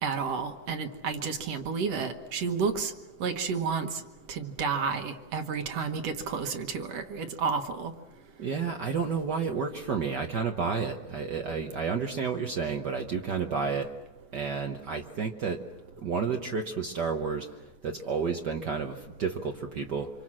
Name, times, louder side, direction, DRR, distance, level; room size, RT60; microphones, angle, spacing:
voice 1, 0.0-2.9 3.2-4.0 4.3-7.9, right 5 dB, 60° right, 7 dB, 2.1 m, -31 dB
voice 2, 8.4-13.9 14.3-15.6 16.0-17.5 17.8-20.1, right 5 dB, 85° right, 4 dB, 0.9 m, -31 dB
26.0 x 24.5 x 7.5 m, 1.1 s
omnidirectional pair, 3.5 m